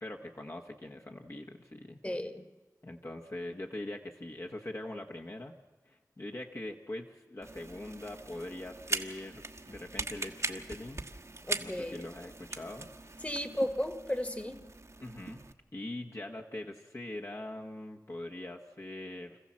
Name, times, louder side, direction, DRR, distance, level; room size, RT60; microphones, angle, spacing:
voice 1, 0.0-2.0 2.8-5.5 5.8-11.0 11.6-13.2 15.0-15.4 15.7-19.4, left 1 dB, 45° left, 1 dB, 1.4 m, -42 dB
voice 2, 2.0-2.5 11.5-12.1 13.2-14.6, left 1 dB, 20° left, 10 dB, 1.6 m, -34 dB
sound 1, 7.4-15.5, right 2 dB, 45° right, 1.2 m, -41 dB
26.0 x 14.5 x 7.5 m, 1.2 s
cardioid pair, 40°, 7 cm